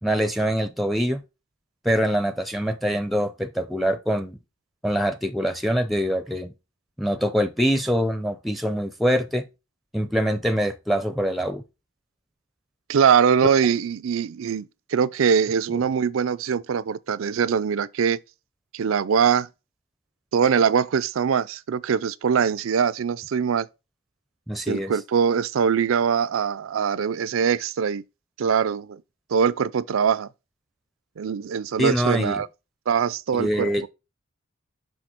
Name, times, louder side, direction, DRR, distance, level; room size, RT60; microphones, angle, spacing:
voice 1, 0.0-1.2 1.8-4.4 4.8-6.5 7.0-9.4 9.9-11.6 24.5-24.9 31.8-32.4 33.3-33.9, equal, ahead, 0.5 m, -24 dB
voice 2, 12.9-18.2 18.7-19.5 20.3-23.7 24.7-28.0 28.4-29.0 29.3-30.3 31.2-32.5 32.9-33.7, right 7 dB, 85° right, 0.4 m, -22 dB
6.3 x 5.1 x 4.4 m
head